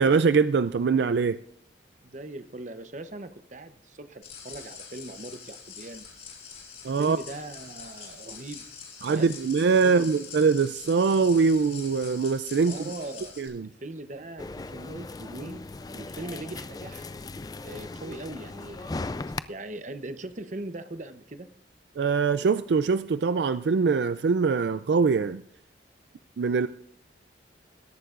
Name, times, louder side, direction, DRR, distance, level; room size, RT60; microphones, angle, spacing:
voice 1, 0.0-1.4 6.8-7.2 9.0-12.8 13.4-13.7 22.0-25.4 26.4-26.7, right 5 dB, 65° right, 0.4 m, -23 dB
voice 2, 2.0-6.1 7.0-8.7 9.1-9.3 9.8-10.1 12.7-13.4 13.8-15.6 15.9-17.1 17.6-19.1 19.5-21.5, right 2 dB, 40° right, 0.8 m, -40 dB
sound 1, 4.2-13.5, left 6 dB, 40° left, 5.6 m, -44 dB
sound 2, 14.4-19.4, left 3 dB, 20° left, 0.3 m, -38 dB
21.0 x 11.0 x 2.5 m
head